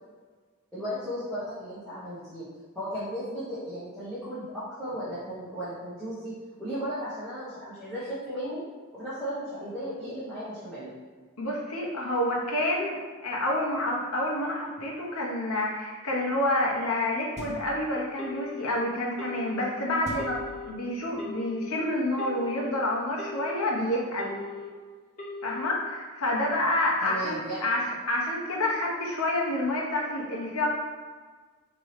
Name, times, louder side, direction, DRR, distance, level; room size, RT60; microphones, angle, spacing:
voice 1, 0.7-2.4 2.7-6.3 6.6-8.6 8.9-10.9 27.0-27.6, equal, 5° left, -15 dB, 1.1 m, -35 dB
voice 2, 11.4-13.0 13.2-24.4 25.4-27.8 28.1-30.7, left 1 dB, 75° left, -2 dB, 0.9 m, -28 dB
sound 1, 17.4-18.0 20.0-21.1, equal, 30° right, 0.4 m, -43 dB
Telephone, 18.2-18.7 19.2-19.7 20.2-20.7 21.2-21.7 22.2-22.7 23.2-23.7 24.2-24.7 25.2-25.7, left 3 dB, 35° left, 0.7 m, -39 dB
4.6 x 2.9 x 3.2 m, 1.5 s
head